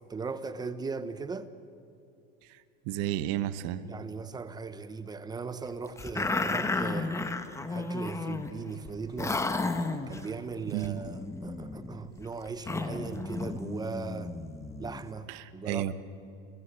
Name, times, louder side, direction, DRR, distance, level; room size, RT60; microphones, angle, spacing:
voice 1, 0.0-1.5 3.9-7.1 7.7-9.5 10.1-14.3 14.8-15.9, right 4 dB, 15° right, 1.0 m, -38 dB
voice 2, 2.4-3.9 10.2-10.3 10.7-11.0 15.3-15.9, right 13 dB, 60° right, 1.2 m, -33 dB
sound 1, 6.0-8.5 8.8-8.9 9.2-10.3 10.8-15.0, left 3 dB, 10° left, 1.2 m, -33 dB
29.5 x 16.5 x 8.1 m
supercardioid pair, 140°, 30 cm